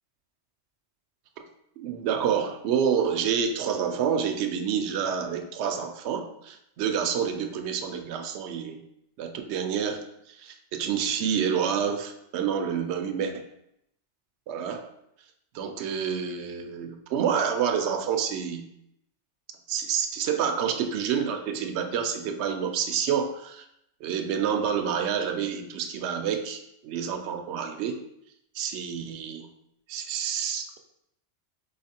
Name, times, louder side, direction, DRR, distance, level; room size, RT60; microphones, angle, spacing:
voice 1, 1.8-8.8 9.2-13.5 14.5-14.9 15.5-18.6 19.7-23.6 24.0-28.0 28.5-29.5 29.9-30.8, right 7 dB, 70° right, 5 dB, 0.8 m, -28 dB
3.9 x 3.2 x 4.2 m, 0.79 s
omnidirectional pair, 1.2 m